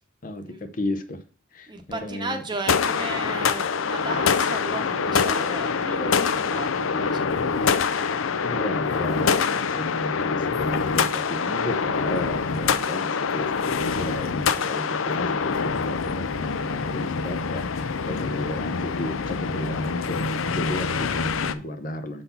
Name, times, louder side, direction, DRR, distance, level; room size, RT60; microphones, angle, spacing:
voice 1, 0.2-1.2 1.5-2.4 8.4-22.2, left 1 dB, 40° left, 0.7 m, -33 dB
voice 2, 1.7-7.7, right 2 dB, 20° right, 0.9 m, -35 dB
sound 1, 2.7-21.5, left 5 dB, 85° left, 0.5 m, -25 dB
6.9 x 4.0 x 5.6 m
head